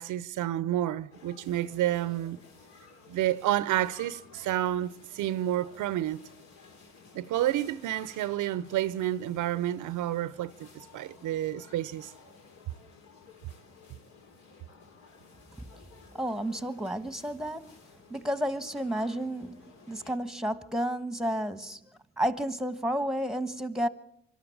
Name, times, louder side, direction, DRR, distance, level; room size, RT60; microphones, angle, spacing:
voice 1, 0.0-2.4 3.1-6.2 7.1-12.1, right 13 dB, 80° right, 0.7 m, -30 dB
sound 1, 1.1-20.2, left 4 dB, 70° left, 3.5 m, -54 dB
voice 2, 16.2-17.6 18.1-19.6 19.9-21.8 22.2-23.9, equal, ahead, 1.3 m, -31 dB
25.5 x 12.5 x 8.6 m
cardioid pair, 90°, 30 cm